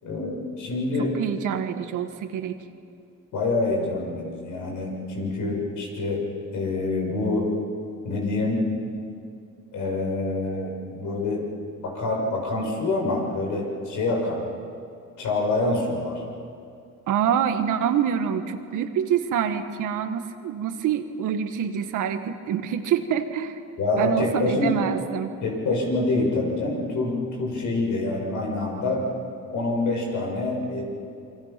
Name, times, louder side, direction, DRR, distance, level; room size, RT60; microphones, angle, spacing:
voice 1, 0.0-1.2 3.3-6.3 6.5-7.5 8.0-8.6 9.7-11.5 11.8-14.4 15.2-16.2 23.8-24.7 25.4-29.1 29.5-30.8, left 2 dB, 80° left, -1 dB, 6.9 m, -26 dB
voice 2, 1.0-2.6 17.1-23.6 24.0-25.3, right 8 dB, 85° right, 7 dB, 1.7 m, -26 dB
28.5 x 23.5 x 6.0 m, 2.5 s
cardioid pair, 90°, 30 cm